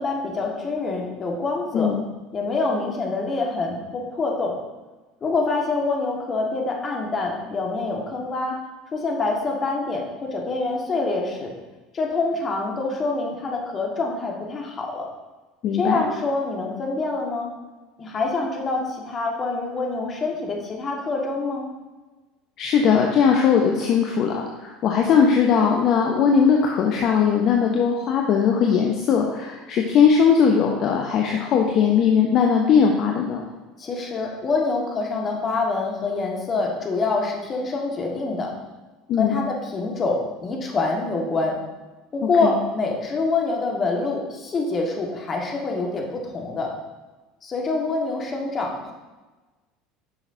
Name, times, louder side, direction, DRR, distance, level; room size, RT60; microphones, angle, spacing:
voice 1, 0.0-1.9 2.3-4.6 5.2-8.6 8.9-11.5 11.9-15.1 15.7-17.5 18.0-21.6 33.8-38.5 39.2-41.6 42.1-46.7 47.4-48.9, left 3 dB, 35° left, 0 dB, 1.6 m, -26 dB
voice 2, 15.6-16.0 22.6-33.4 39.1-39.4 42.4-42.5, left 6 dB, 50° left, 1 dB, 0.7 m, -19 dB
9.8 x 5.9 x 2.7 m, 1.2 s
hypercardioid pair, 70°, 0 cm